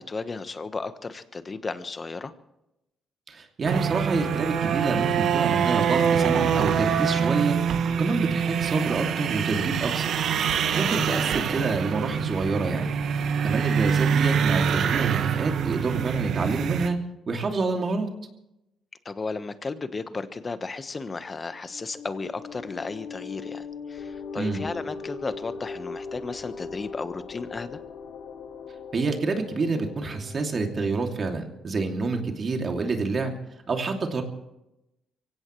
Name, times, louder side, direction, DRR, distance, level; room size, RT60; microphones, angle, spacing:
voice 1, 0.0-2.3 10.7-11.0 19.0-27.8, left 4 dB, 30° left, 11 dB, 1.3 m, -34 dB
voice 2, 3.3-7.6 8.0-10.1 10.7-12.9 13.4-17.0 17.3-18.1 24.4-24.6 28.9-33.3 33.7-34.2, right 3 dB, 45° right, 3 dB, 2.7 m, -27 dB
sound 1, 3.6-16.9, right 7 dB, 70° right, 1.2 m, -25 dB
sound 2, 21.5-31.7, left 5 dB, 70° left, 1.8 m, -40 dB
24.0 x 16.5 x 3.3 m, 0.88 s
cardioid pair, 90°, 0 cm